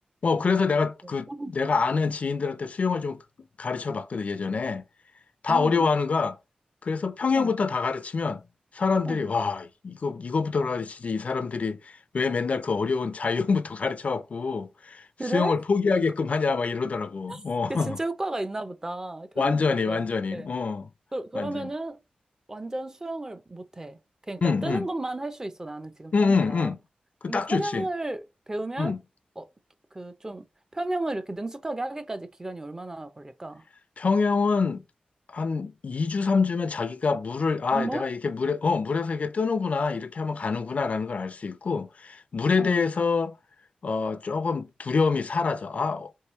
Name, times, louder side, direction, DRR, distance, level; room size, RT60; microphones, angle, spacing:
voice 1, 0.2-3.2 3.6-4.8 5.4-6.4 6.8-8.4 8.7-18.0 19.4-20.9 21.4-21.7 24.4-24.9 26.1-26.8 27.2-27.9 28.8-29.0 34.0-34.8 35.3-43.4 43.8-46.1, left 4 dB, 55° left, 0.4 m, -26 dB
voice 2, 1.0-1.5 5.5-5.9 7.3-7.5 9.0-9.3 15.2-15.6 17.3-17.4 17.7-20.5 21.1-22.0 22.5-24.0 24.3-26.7 27.3-28.9 29.4-29.5 29.9-30.4 30.7-33.6 37.7-38.0 42.6-42.9, right 2 dB, 20° right, 0.5 m, -33 dB
4.7 x 3.0 x 3.0 m
wide cardioid pair, 100°, 3 cm